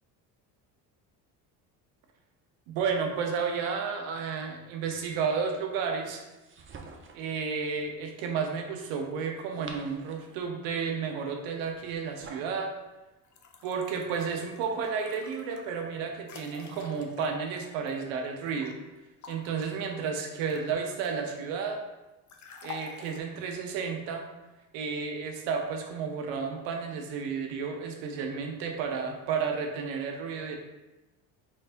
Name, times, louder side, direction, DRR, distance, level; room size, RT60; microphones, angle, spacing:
voice 1, 2.7-6.2 7.1-12.7 13.6-18.8 19.3-21.8 22.6-24.2 24.7-30.6, right 5 dB, 80° right, 3 dB, 0.8 m, -32 dB
sound 1, 6.3-7.3 9.3-10.4 11.7-12.6, right 4 dB, 30° right, 0.5 m, -48 dB
sound 2, 13.2-18.7 19.2-21.3 22.3-23.2, left 5 dB, 40° left, 0.6 m, -48 dB
4.1 x 3.4 x 2.5 m, 1.1 s
supercardioid pair, 75°, 44 cm